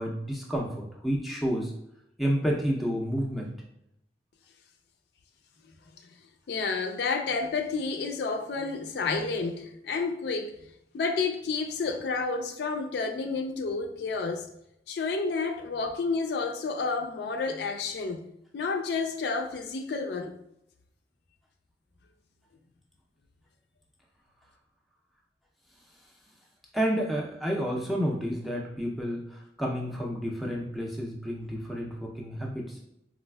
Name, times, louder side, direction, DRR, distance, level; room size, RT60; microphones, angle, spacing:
voice 1, 0.0-1.7 2.2-3.5 26.7-32.8, equal, ahead, 0.4 m, -30 dB
voice 2, 6.5-10.5 10.9-14.5 14.9-18.2 18.5-20.3, left 4 dB, 65° left, 0.3 m, -30 dB
4.2 x 2.4 x 2.2 m
head